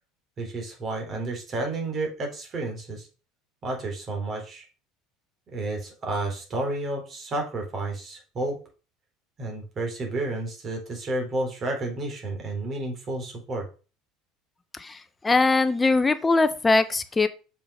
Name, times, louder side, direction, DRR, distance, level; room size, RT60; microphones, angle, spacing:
voice 1, 0.4-3.1 3.6-4.7 5.5-8.6 9.4-13.6, right 2 dB, 40° right, 2 dB, 3.7 m, -31 dB
voice 2, 15.2-17.3, left 3 dB, 15° left, 12 dB, 0.8 m, -21 dB
6.9 x 6.1 x 4.9 m, 0.35 s
supercardioid pair, 105°, 0 cm